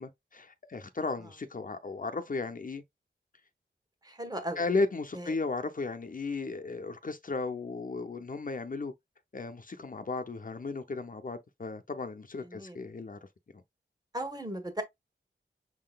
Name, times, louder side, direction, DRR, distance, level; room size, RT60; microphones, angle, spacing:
voice 1, 0.0-2.8 4.6-8.9 9.3-13.2, left 3 dB, 45° left, 0.6 m, -35 dB
voice 2, 4.0-4.6 5.1-5.3 12.4-12.8 14.1-14.8, right 1 dB, 20° right, 1.2 m, -37 dB
6.0 x 3.8 x 2.3 m
wide cardioid pair, 75°, 20 cm